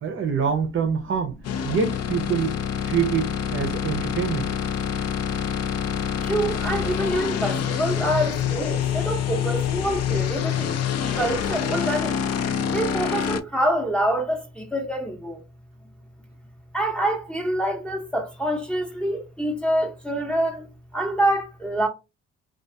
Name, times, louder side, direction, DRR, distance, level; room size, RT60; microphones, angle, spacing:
voice 1, 0.0-1.4 1.6-4.5, right 6 dB, 45° right, 0.6 m, -25 dB
sound 1, 1.4-13.4, left 8 dB, 55° left, 0.5 m, -26 dB
voice 2, 6.2-10.8 11.1-12.2 12.7-15.4 16.7-21.9, right 1 dB, 5° left, 0.6 m, -26 dB
2.4 x 2.3 x 2.6 m
cardioid pair, 90°, 30 cm